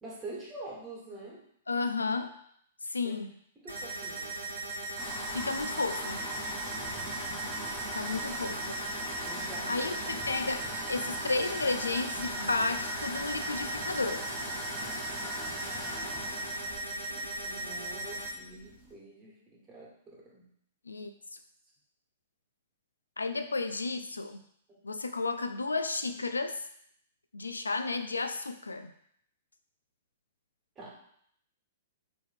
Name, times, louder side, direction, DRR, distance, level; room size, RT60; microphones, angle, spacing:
voice 1, 0.0-1.4 3.0-3.2 3.5-4.4 8.1-8.3 9.2-10.0 17.0-20.5 24.7-24.8 30.7-30.9, right 2 dB, 20° right, -4 dB, 1.6 m, -46 dB
voice 2, 1.7-2.3 2.8-3.3 5.3-6.2 7.9-8.8 9.7-14.3 20.9-21.1 23.2-24.4 24.8-26.6 27.3-28.9, left 3 dB, 80° left, 8 dB, 0.3 m, -32 dB
sound 1, 3.7-18.3, right 2 dB, 75° right, 1.1 m, -38 dB
sound 2, 5.0-18.9, equal, ahead, 1.2 m, -40 dB
4.7 x 3.0 x 3.5 m, 0.67 s
figure-of-eight pair, 110°, 0 cm